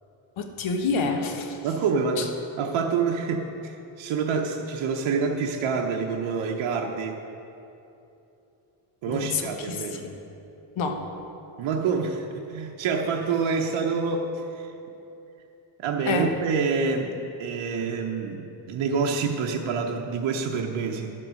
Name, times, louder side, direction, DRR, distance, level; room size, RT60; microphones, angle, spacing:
voice 1, 0.4-1.6 2.2-2.3 9.1-10.1 10.8-11.0 16.0-16.3, left 4 dB, 80° left, 4 dB, 1.3 m, -28 dB
voice 2, 1.6-7.2 9.0-10.1 11.6-14.7 15.8-21.1, right 5 dB, 90° right, 1 dB, 0.9 m, -27 dB
11.5 x 7.7 x 6.3 m, 2.9 s
cardioid pair, 125°, 46 cm